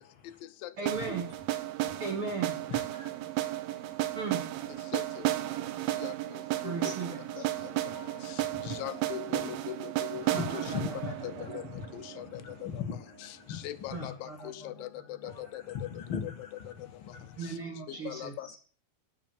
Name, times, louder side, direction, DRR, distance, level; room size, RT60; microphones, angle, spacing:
voice 1, 0.8-1.3 2.0-2.6 4.1-4.4 6.6-7.5 10.3-11.6 13.9-14.5 15.2-15.3 17.4-18.6, right 4 dB, 45° right, 2.3 m, -37 dB
sound 1, 0.9-12.8, right 15 dB, 90° right, 2.8 m, -34 dB
voice 2, 2.7-4.2 7.9-8.8 10.3-10.4 10.7-11.9 12.3-14.1 15.5-17.4, left 7 dB, 50° left, 1.6 m, -41 dB
voice 3, 4.9-5.3 6.0-6.9 7.4-7.5 7.9-10.7 11.2-11.6 11.9-12.8 13.2-14.9 15.2-15.9 16.2-16.5 17.4-17.5 17.9-18.6, left 13 dB, 75° left, 2.4 m, -41 dB
9.1 x 8.7 x 7.2 m
omnidirectional pair, 4.3 m